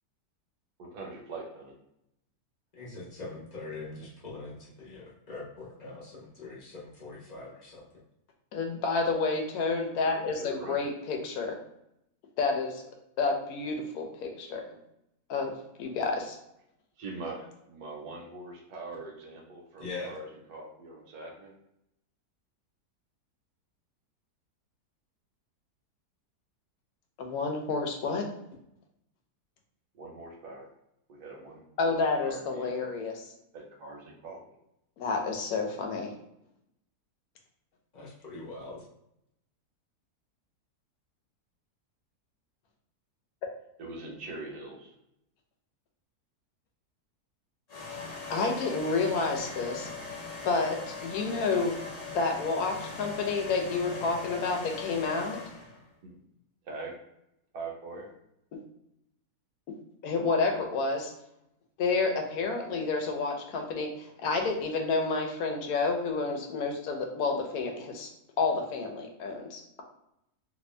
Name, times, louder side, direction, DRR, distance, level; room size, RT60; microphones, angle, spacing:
voice 1, 0.8-1.7 10.3-10.8 17.0-17.4 17.7-21.5 29.9-30.7 31.1-32.9 33.5-34.4 43.8-44.9 56.0-56.1 56.6-56.9 57.5-58.1, right 3 dB, 70° right, 0 dB, 1.3 m, -42 dB
voice 2, 2.8-7.8 19.8-20.1 37.9-38.8, left 3 dB, 35° left, -6 dB, 0.8 m, -42 dB
voice 3, 8.5-11.5 12.4-12.8 13.2-14.6 15.3-15.5 15.8-16.4 27.2-28.3 31.8-33.1 35.0-36.1 48.3-49.9 50.4-51.8 52.1-55.4 60.0-61.1 61.8-68.1 68.4-69.8, left 4 dB, 70° left, 3 dB, 1.1 m, -29 dB
sound 1, 47.7-55.8, left 4 dB, 55° left, 0.4 m, -40 dB
2.9 x 2.6 x 3.2 m, 0.80 s
omnidirectional pair, 1.7 m